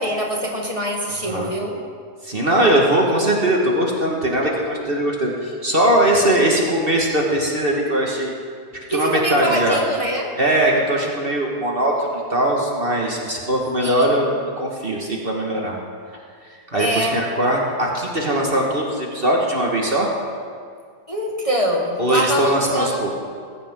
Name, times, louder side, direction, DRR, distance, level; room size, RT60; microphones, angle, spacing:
voice 1, 0.0-1.8 8.9-10.3 13.8-14.3 16.7-17.2 21.1-23.0, equal, 20° left, -1 dB, 1.7 m, -24 dB
voice 2, 2.2-8.3 8.9-9.8 10.4-15.8 16.7-20.1 22.0-23.1, right 1 dB, 35° right, -2 dB, 2.0 m, -20 dB
19.5 x 15.5 x 3.8 m, 2.1 s
omnidirectional pair, 1.8 m